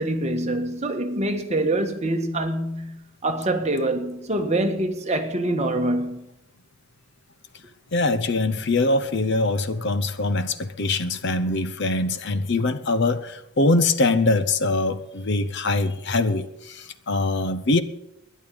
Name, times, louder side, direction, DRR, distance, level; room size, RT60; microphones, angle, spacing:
voice 1, 0.0-3.0 3.2-6.3, right 1 dB, 30° right, 1.5 m, -25 dB
voice 2, 7.9-17.8, left 2 dB, 50° left, 0.8 m, -23 dB
12.5 x 10.5 x 7.9 m
head